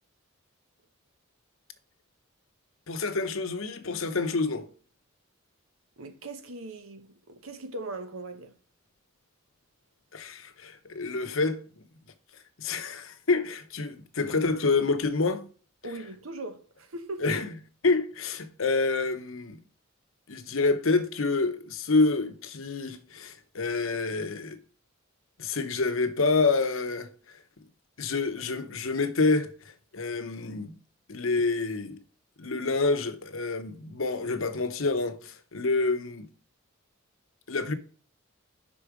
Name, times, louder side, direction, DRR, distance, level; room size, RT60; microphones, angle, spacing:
voice 1, 2.9-4.6 10.1-11.6 12.6-15.4 17.2-17.5 17.8-19.6 20.3-24.6 25.4-27.4 28.0-29.5 29.9-30.8 31.1-32.0 32.4-36.3 37.5-37.7, left 3 dB, 75° left, 0.9 m, -27 dB
voice 2, 6.0-8.5 15.8-17.4, right 2 dB, 80° right, 1.1 m, -39 dB
5.5 x 5.0 x 4.9 m
head